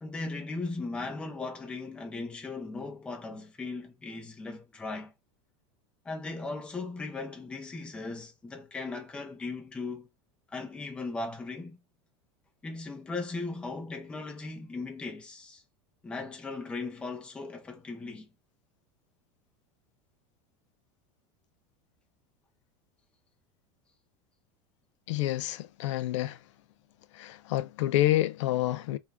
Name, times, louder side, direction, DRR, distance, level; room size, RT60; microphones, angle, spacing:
voice 1, 0.0-5.1 6.0-10.1 10.5-11.8 12.6-15.6 16.0-18.3, left 3 dB, 5° left, 0.6 m, -38 dB
voice 2, 25.1-26.4 27.1-29.0, left 14 dB, 85° left, 0.4 m, -28 dB
3.4 x 2.3 x 3.4 m
supercardioid pair, 180°, 15 cm